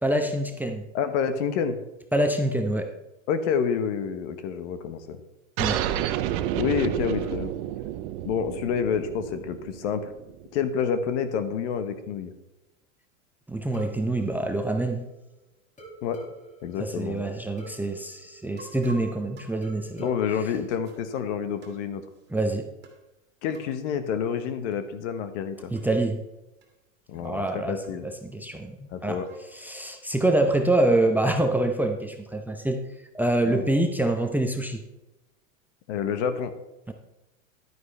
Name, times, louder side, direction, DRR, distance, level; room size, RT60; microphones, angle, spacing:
voice 1, 0.0-0.8 2.1-2.9 5.6-5.8 13.5-15.1 16.8-20.1 22.3-22.7 25.7-26.2 27.1-29.2 29.5-32.8 33.1-34.8 36.9-37.0, right 1 dB, 5° right, 5 dB, 0.7 m, -26 dB
voice 2, 0.9-1.8 3.3-5.2 6.6-7.5 8.2-10.1 10.5-12.3 16.0-16.2 16.6-17.4 20.0-22.0 23.4-25.7 27.1-28.0 28.9-29.3 33.4-33.6 35.9-36.5, left 7 dB, 60° left, 10 dB, 1.3 m, -28 dB
sound 1, 5.6-10.6, right 12 dB, 50° right, 0.8 m, -30 dB
sound 2, 13.7-15.3 15.8-19.2 19.6-21.6, right 2 dB, 20° left, 2.2 m, -49 dB
sound 3, 18.6-21.1 21.6-22.3 22.8-23.1 23.5-23.8 24.7-24.9 25.1-25.2 25.8-26.0 26.6-26.7 27.2-27.3 27.8-28.3 28.9-29.6, right 1 dB, 25° right, 2.2 m, -50 dB
11.0 x 9.3 x 3.4 m, 0.97 s
hypercardioid pair, 115°, 39 cm